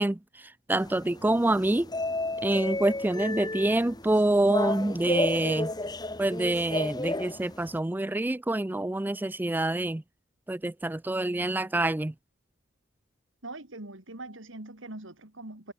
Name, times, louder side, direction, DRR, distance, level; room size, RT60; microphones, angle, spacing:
voice 1, 0.0-1.9 2.4-5.7 6.2-10.0 10.5-12.1, right 1 dB, 10° right, 0.3 m, -26 dB
sound 1, 0.8-7.8, left 2 dB, 20° left, 1.5 m, -32 dB
voice 2, 13.4-15.7, right 2 dB, 65° right, 3.0 m, -42 dB
head